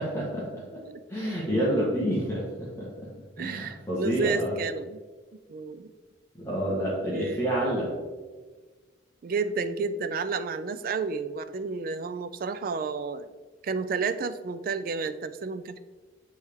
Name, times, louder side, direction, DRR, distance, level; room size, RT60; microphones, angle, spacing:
voice 1, 0.0-0.8 1.1-3.1 3.4-4.6 6.4-7.9, equal, 15° left, -7 dB, 1.2 m, -28 dB
voice 2, 3.4-5.0 5.5-5.9 7.0-7.5 9.2-13.3 13.6-15.8, right 4 dB, 45° right, 12 dB, 0.3 m, -31 dB
9.0 x 3.2 x 3.5 m, 1.4 s
head